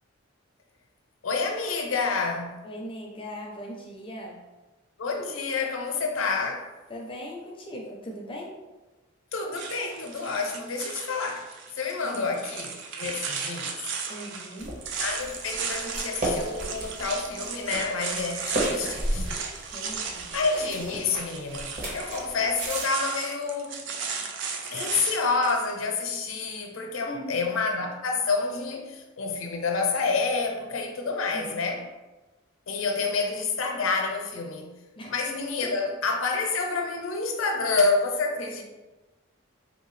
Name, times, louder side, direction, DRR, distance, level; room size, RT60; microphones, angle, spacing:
voice 1, 1.2-2.6 5.0-6.7 9.3-13.8 15.0-19.3 20.3-23.8 24.7-31.8 32.7-34.7 35.1-38.6, left 4 dB, 75° left, 2 dB, 0.6 m, -28 dB
voice 2, 2.6-4.4 6.9-8.6 12.0-12.4 14.1-14.8 19.7-20.4 24.7-24.9 27.1-27.5 31.3-31.6 35.0-35.1 35.6-35.7, equal, 25° left, 0 dB, 0.4 m, -39 dB
sound 1, 9.5-25.7, right 5 dB, 60° right, 0.4 m, -35 dB
sound 2, 14.6-22.9, right 1 dB, 45° right, 1.1 m, -34 dB
3.4 x 2.7 x 3.0 m, 1.1 s
head